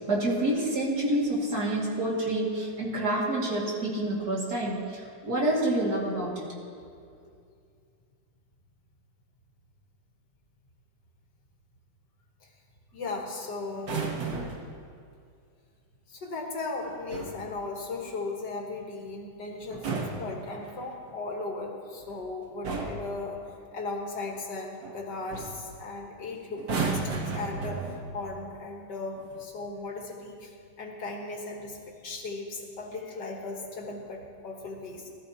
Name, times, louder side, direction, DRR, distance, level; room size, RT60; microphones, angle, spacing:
voice 1, 0.1-6.4, right 1 dB, 55° right, -4 dB, 2.8 m, -28 dB
voice 2, 12.9-14.1 16.1-35.1, left 3 dB, 70° left, 0 dB, 2.1 m, -37 dB
sound 1, 13.8-14.7 16.8-17.5 19.6-21.0 22.0-22.3 22.6-23.1 24.8-25.0 25.3-25.6 26.6-28.2 29.2-29.4, right 4 dB, 80° right, 2.0 m, -34 dB
20.0 x 13.5 x 3.0 m, 2.3 s
omnidirectional pair, 2.0 m